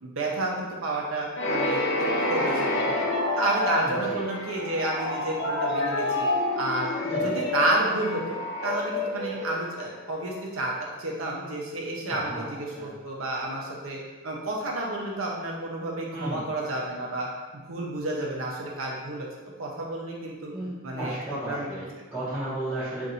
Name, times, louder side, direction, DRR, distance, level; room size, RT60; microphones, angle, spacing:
voice 1, 0.0-3.1 3.4-6.3 6.6-17.3 17.7-19.3 19.6-20.5 20.8-21.9, right 1 dB, 75° right, -2 dB, 0.7 m, -31 dB
sound 1, 1.4-10.1, left 1 dB, 60° left, 0.5 m, -28 dB
voice 2, 3.8-4.2 7.0-7.3 12.1-12.5 12.7-13.0 16.1-16.4 20.5-23.1, right 1 dB, 5° right, -16 dB, 1.0 m, -34 dB
2.6 x 2.5 x 4.2 m, 1.3 s
head